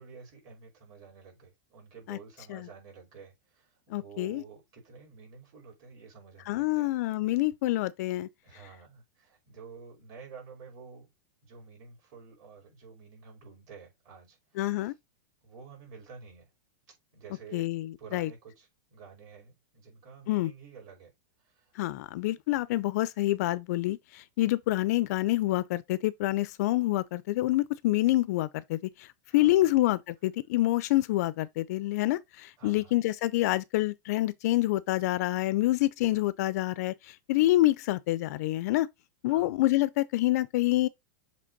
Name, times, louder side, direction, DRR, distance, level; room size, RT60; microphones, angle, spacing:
voice 1, 0.0-6.9 8.4-11.1 11.4-14.9 15.4-16.5 17.1-17.7 18.0-21.1 21.4-21.7 29.3-29.8 32.6-33.0 39.3-39.6, right 5 dB, 35° right, 4.8 m, -50 dB
voice 2, 3.9-4.4 6.5-8.3 14.6-14.9 17.5-18.3 20.3-20.5 21.8-29.1 29.3-38.9 39.2-40.9, left 16 dB, 55° left, 0.5 m, -27 dB
7.5 x 3.4 x 3.9 m
supercardioid pair, 155°, 10 cm